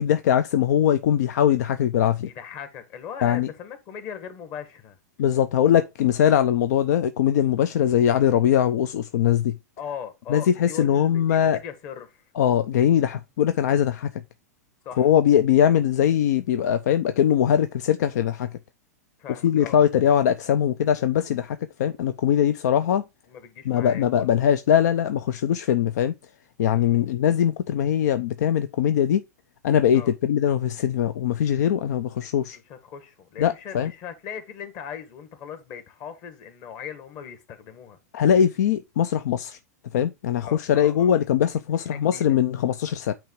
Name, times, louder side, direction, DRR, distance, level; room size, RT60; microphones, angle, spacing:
voice 1, 0.0-2.3 3.2-3.5 5.2-9.6 10.3-11.6 12.4-14.2 15.0-18.5 19.4-23.0 23.7-26.1 26.6-29.2 29.6-32.6 33.4-33.9 38.1-39.6 39.9-43.1, left 9 dB, 75° left, 0.5 m, -21 dB
voice 2, 2.2-5.0 9.8-12.2 14.8-15.1 19.2-19.9 23.3-24.3 26.7-27.1 29.9-30.1 32.6-38.0 40.4-41.1 41.8-42.4, left 8 dB, 45° left, 1.7 m, -39 dB
9.0 x 3.0 x 4.6 m
hypercardioid pair, 120°, 9 cm